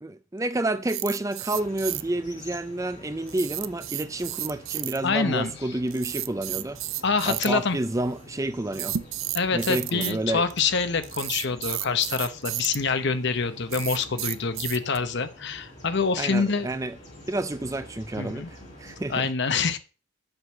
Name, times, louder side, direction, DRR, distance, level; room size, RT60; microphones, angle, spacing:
voice 1, 0.0-6.8 7.3-9.0 9.5-10.4 16.2-17.0 17.3-19.3, right 2 dB, 15° right, 0.4 m, -29 dB
sound 1, 0.8-2.0 3.3-5.0 5.9-7.5 8.7-10.1 10.5-10.6 11.0-12.8 13.7-15.0, right 13 dB, 75° right, 0.6 m, -32 dB
sound 2, 1.5-19.3, left 1 dB, 35° left, 4.3 m, -47 dB
voice 2, 5.0-5.5 7.0-7.8 9.3-16.7 18.1-18.5 19.1-19.8, left 5 dB, 55° left, 0.9 m, -26 dB
7.9 x 6.2 x 7.1 m
head